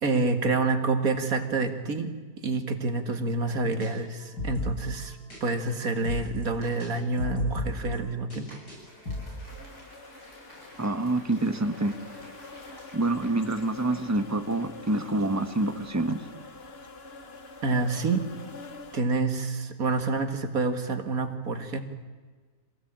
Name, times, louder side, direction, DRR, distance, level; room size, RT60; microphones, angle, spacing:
voice 1, 0.0-2.1 2.4-8.6 17.6-18.2 18.9-21.8, right 3 dB, 60° right, 7 dB, 2.2 m, -28 dB
sound 1, 3.8-3.9 4.2-5.4 5.7-6.9 7.2-8.8 9.1-9.6, left 2 dB, 85° left, 8.6 m, -36 dB
Applause, 8.1-15.6, left 1 dB, 65° left, 8.0 m, -53 dB
sound 2, 9.5-19.0, left 3 dB, 40° left, 1.6 m, -46 dB
voice 2, 10.8-11.9 12.9-16.2, right 2 dB, 10° right, 7 dB, 1.3 m, -27 dB
25.5 x 18.0 x 8.9 m, 1.5 s
omnidirectional pair, 1.8 m